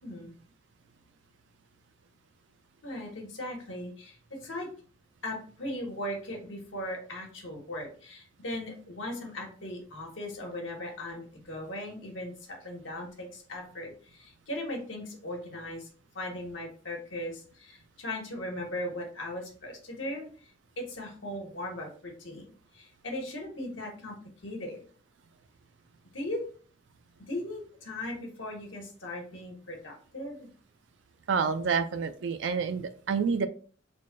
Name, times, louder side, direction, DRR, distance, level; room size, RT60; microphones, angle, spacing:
voice 1, 0.0-0.3 2.8-4.7 5.2-15.9 16.1-20.5 20.8-24.2 24.4-24.9 26.1-26.4 27.3-30.5, left 1 dB, 75° left, 0 dB, 1.2 m, -38 dB
voice 2, 31.3-33.5, right 5 dB, 65° right, 9 dB, 0.4 m, -28 dB
3.4 x 2.2 x 3.8 m, 0.42 s
head